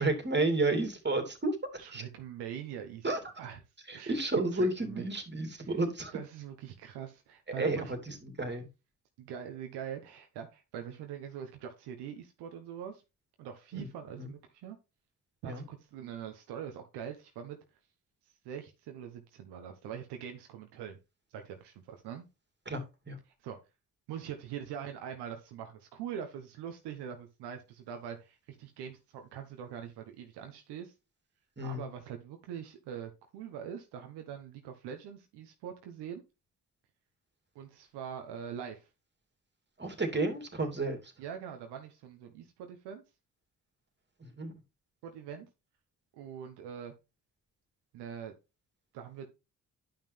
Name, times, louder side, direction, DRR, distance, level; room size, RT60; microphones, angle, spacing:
voice 1, 0.0-2.0 3.0-3.2 3.9-6.2 7.6-8.7 13.7-13.9 14.2-14.3 15.4-15.6 22.7-23.2 31.6-31.8 39.8-41.1 44.2-44.5, right 2 dB, 25° right, 2.8 m, -32 dB
voice 2, 1.8-3.0 3.4-3.6 3.9-4.2 4.5-5.0 5.6-5.7 6.1-7.9 9.2-13.0 13.4-14.8 15.4-17.6 18.4-21.0 21.3-22.3 23.4-23.6 24.1-30.9 31.6-36.2 37.5-38.9 41.2-43.0 45.0-45.5 46.1-46.9 47.9-48.3 48.9-49.3, right 8 dB, 75° right, 1.2 m, -43 dB
10.0 x 5.8 x 3.3 m
hypercardioid pair, 50°, 40 cm